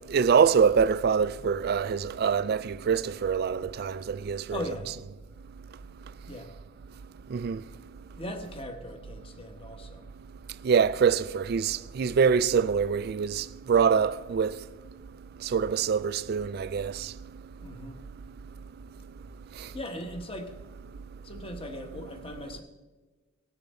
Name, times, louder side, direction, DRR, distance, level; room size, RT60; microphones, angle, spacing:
voice 1, 0.1-4.6 7.3-7.6 10.6-14.5 15.4-17.1 19.6-19.7, right 6 dB, 45° right, 0.3 m, -25 dB
voice 2, 4.5-4.9 6.3-6.5 8.2-10.1 17.6-18.0 19.7-20.5 21.2-22.6, left 1 dB, 25° left, 1.1 m, -39 dB
19.0 x 6.9 x 4.2 m
head